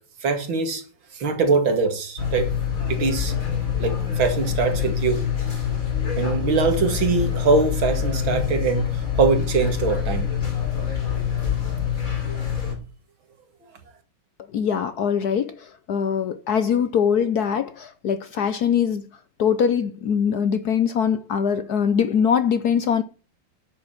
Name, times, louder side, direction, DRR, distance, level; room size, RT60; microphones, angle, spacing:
voice 1, 0.2-0.8 1.1-2.5 2.9-3.3 3.8-5.2 6.2-8.9 9.2-10.3, right 4 dB, 70° right, 2.8 m, -22 dB
sound 1, 2.2-12.7, left 8 dB, 40° left, 3.6 m, -25 dB
voice 2, 14.5-19.0 19.4-23.0, left 7 dB, 60° left, 1.1 m, -22 dB
10.5 x 7.1 x 7.2 m
omnidirectional pair, 2.2 m